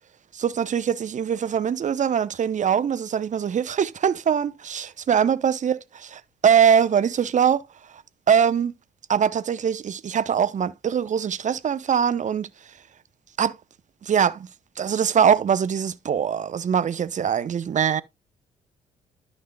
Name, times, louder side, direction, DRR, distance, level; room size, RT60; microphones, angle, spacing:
voice 1, 0.3-7.6 8.3-8.7 9.1-12.5 13.4-13.6 14.0-14.5 14.8-18.0, right 8 dB, 40° right, 0.7 m, -22 dB
12.0 x 5.4 x 2.3 m
hypercardioid pair, 45°, 19 cm